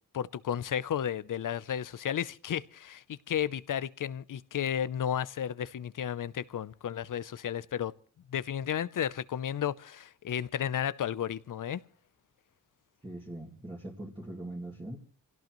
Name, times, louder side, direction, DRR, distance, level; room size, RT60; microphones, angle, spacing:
voice 1, 0.1-7.9 8.3-11.8, left 9 dB, 65° left, 0.7 m, -33 dB
voice 2, 13.0-15.0, right 1 dB, 15° right, 2.4 m, -41 dB
26.5 x 17.0 x 3.1 m
wide cardioid pair, 100°, 34 cm